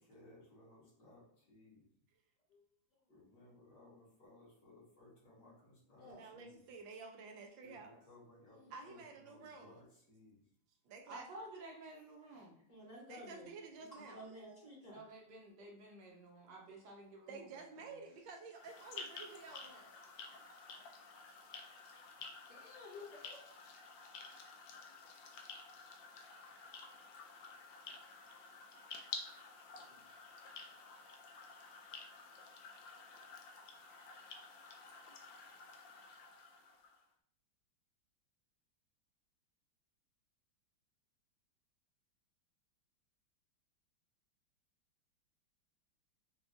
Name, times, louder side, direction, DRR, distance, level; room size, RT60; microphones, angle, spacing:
voice 1, 0.0-1.8 3.1-6.6 7.6-10.4, left 2 dB, 65° left, -7 dB, 2.3 m, -61 dB
voice 2, 6.1-8.0 8.3-8.4 8.7-9.8 10.8-11.3 13.1-14.2 17.3-20.0, right 4 dB, 90° right, 3 dB, 1.4 m, -51 dB
voice 3, 11.1-12.6 14.9-17.5 20.3-20.4, right 1 dB, 65° right, -1 dB, 1.3 m, -52 dB
voice 4, 12.7-13.4 14.0-15.0 22.5-23.4 29.9-30.0, left 1 dB, 45° left, -4 dB, 1.6 m, -53 dB
sound 1, 18.5-37.0, left 4 dB, 80° left, 1.3 m, -52 dB
6.0 x 2.3 x 2.6 m, 0.68 s
omnidirectional pair, 2.1 m